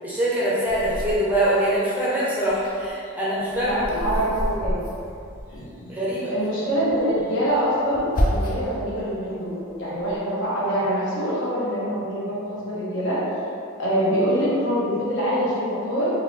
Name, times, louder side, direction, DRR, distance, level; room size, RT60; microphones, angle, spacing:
voice 1, 0.0-4.1 5.9-6.3, right 1 dB, 10° right, -9 dB, 0.6 m, -23 dB
sound 1, 0.7-2.0 2.4-5.9 6.9-8.8 9.2-10.2, equal, 40° left, 0.5 m, -30 dB
voice 2, 3.6-4.8 5.5-5.9 6.3-13.2 13.8-16.1, equal, 60° left, -9 dB, 1.1 m, -25 dB
3.7 x 2.7 x 3.2 m, 2.6 s
head